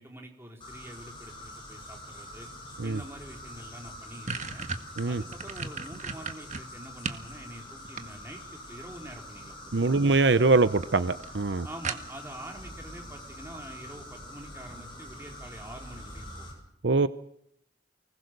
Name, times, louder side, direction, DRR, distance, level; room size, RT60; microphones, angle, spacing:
voice 1, 0.0-2.5 2.8-4.7 5.0-9.6 9.9-10.0 11.6-16.5, right 1 dB, 15° right, 1 dB, 4.4 m, -46 dB
sound 1, 0.6-16.5, left 1 dB, 30° left, 7.8 m, -45 dB
sound 2, 3.4-3.5 3.8-7.3 7.7-8.5 9.6-10.1 10.4-10.5 10.8-10.9 11.2-11.3 11.8-12.4, right 4 dB, 40° right, 1.7 m, -36 dB
voice 2, 9.7-11.7 16.8-17.1, right 3 dB, 75° right, 13 dB, 0.8 m, -23 dB
25.0 x 20.0 x 6.7 m, 0.74 s
head